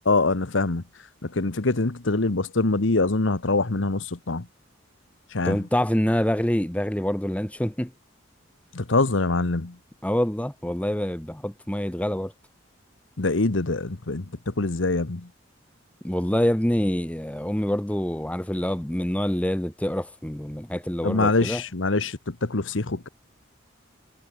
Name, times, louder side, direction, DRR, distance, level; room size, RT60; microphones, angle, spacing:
voice 1, 0.1-0.8 1.2-4.4 5.3-5.6 8.7-9.7 13.2-15.3 21.0-23.1, left 3 dB, 75° left, 1.3 m, -24 dB
voice 2, 5.4-7.9 10.0-12.3 16.0-21.6, equal, 5° left, 1.0 m, -26 dB
head